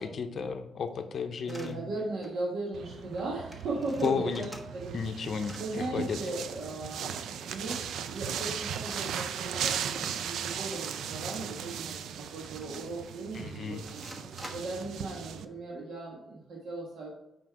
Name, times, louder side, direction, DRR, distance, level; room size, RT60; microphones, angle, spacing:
voice 1, 0.0-1.8 4.0-4.4 4.9-5.5 5.9-6.2 13.3-13.8, left 6 dB, 55° left, 7 dB, 0.6 m, -33 dB
sound 1, 1.4-1.7 2.2-2.4 2.7-2.8 3.0-3.2 3.5-5.1 5.3-5.7 7.1-8.1 8.6-8.7 9.5-9.9 10.2-10.3 10.7-11.0 11.6-11.7 12.4-13.1 13.9-14.9, equal, 10° right, 1.1 m, -49 dB
voice 2, 1.4-4.5 4.7-5.0 5.6-14.0 14.5-17.1, right 2 dB, 75° right, -3 dB, 1.4 m, -37 dB
sound 2, 2.7-15.4, right 8 dB, 90° right, 0.4 m, -37 dB
5.9 x 5.0 x 4.6 m, 0.88 s
cardioid pair, 105°, 0 cm